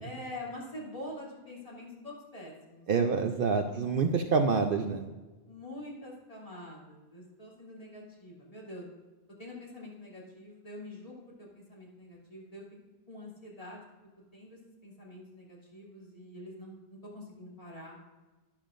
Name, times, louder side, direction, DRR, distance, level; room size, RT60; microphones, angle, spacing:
voice 1, 0.0-3.3 3.7-3.9 5.5-8.9 9.4-12.6 13.1-13.9 14.3-18.0, left 1 dB, 30° left, -5 dB, 2.9 m, -45 dB
voice 2, 2.9-5.1, right 5 dB, 60° right, 6 dB, 0.7 m, -27 dB
11.5 x 11.0 x 2.5 m, 1.2 s
omnidirectional pair, 1.1 m